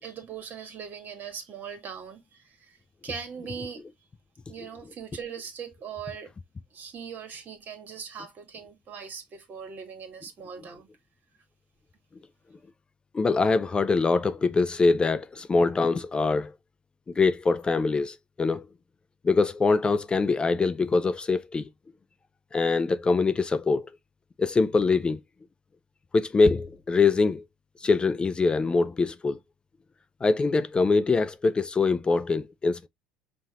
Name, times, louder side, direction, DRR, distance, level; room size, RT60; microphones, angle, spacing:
voice 1, 0.0-2.8 3.0-3.8 4.5-6.3 6.7-10.9, right 6 dB, 45° right, 1.6 m, -40 dB
voice 2, 13.1-16.5 17.2-18.7 19.2-21.7 22.5-23.9 24.4-25.2 26.1-27.4 27.8-29.4 30.2-32.9, left 4 dB, 20° left, 0.4 m, -23 dB
5.5 x 2.5 x 2.9 m
hypercardioid pair, 75°, 4 cm